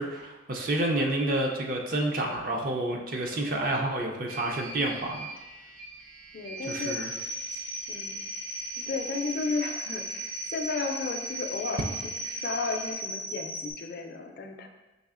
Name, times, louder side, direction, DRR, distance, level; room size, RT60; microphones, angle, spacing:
voice 1, 0.0-5.3 6.7-7.1, right 1 dB, 50° right, 1 dB, 0.5 m, -29 dB
sound 1, 4.3-12.9, right 2 dB, 85° right, 0.7 m, -45 dB
voice 2, 6.3-7.1 7.9-8.2 8.8-11.8 12.2-14.7, left 4 dB, 55° left, 4 dB, 0.4 m, -33 dB
sound 2, 6.6-13.7, right 1 dB, 70° right, 1.1 m, -36 dB
5.4 x 3.3 x 2.4 m, 1.1 s
head